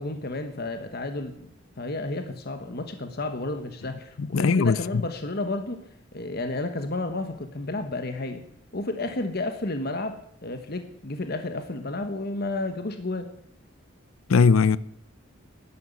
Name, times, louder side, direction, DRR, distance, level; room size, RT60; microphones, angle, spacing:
voice 1, 0.0-1.5 1.8-5.8 6.1-8.4 8.7-13.3, left 2 dB, 50° left, 1.2 m, -31 dB
voice 2, 4.2-5.0 14.3-14.8, left 5 dB, 85° left, 0.5 m, -20 dB
11.5 x 11.0 x 8.3 m
head